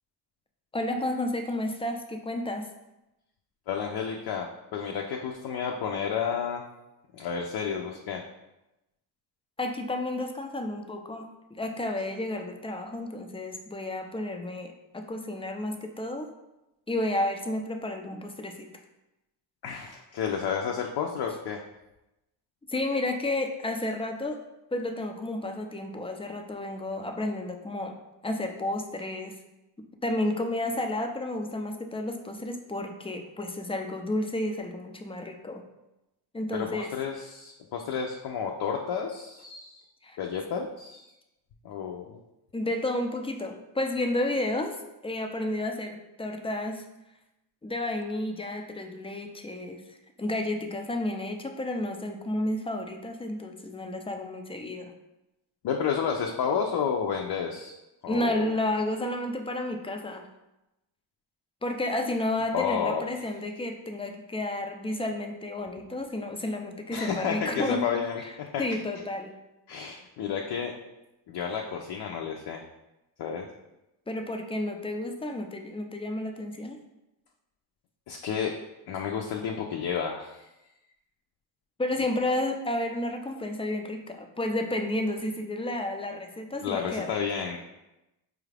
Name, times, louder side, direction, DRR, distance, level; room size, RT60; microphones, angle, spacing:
voice 1, 0.7-2.7 9.6-16.3 16.9-18.7 22.7-24.4 24.7-27.9 28.2-29.4 30.0-35.6 36.3-36.9 40.0-40.2 42.5-46.9 47.6-49.8 50.2-54.9 58.1-60.3 61.6-67.8 68.2-68.3 68.6-69.4 74.1-76.8 81.8-87.2, left 1 dB, 15° left, 4 dB, 0.4 m, -31 dB
voice 2, 3.7-6.6 7.1-8.2 19.6-21.6 36.5-39.8 40.2-41.1 41.6-42.2 55.6-57.7 58.0-58.5 62.5-63.0 66.9-68.2 68.5-68.6 69.7-70.7 71.3-72.6 73.2-73.5 78.1-78.5 78.9-80.5 86.6-87.6, left 7 dB, 60° left, 1 dB, 0.6 m, -31 dB
4.7 x 2.4 x 3.3 m, 0.94 s
cardioid pair, 70°, 46 cm